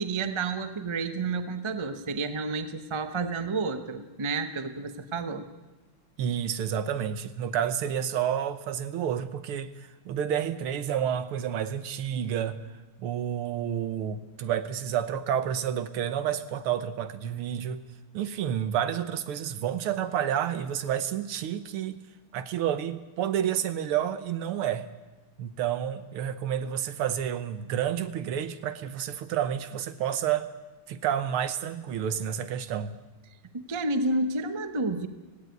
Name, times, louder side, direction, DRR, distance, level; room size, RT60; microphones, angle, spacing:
voice 1, 0.0-5.5 33.5-35.1, right 3 dB, 40° right, 9 dB, 0.4 m, -30 dB
voice 2, 6.2-12.6 13.0-17.8 18.1-22.0 22.3-24.9 25.4-30.5 30.9-33.0, right 9 dB, 80° right, 13 dB, 1.9 m, -30 dB
17.0 x 16.0 x 9.4 m, 1.2 s
omnidirectional pair, 2.4 m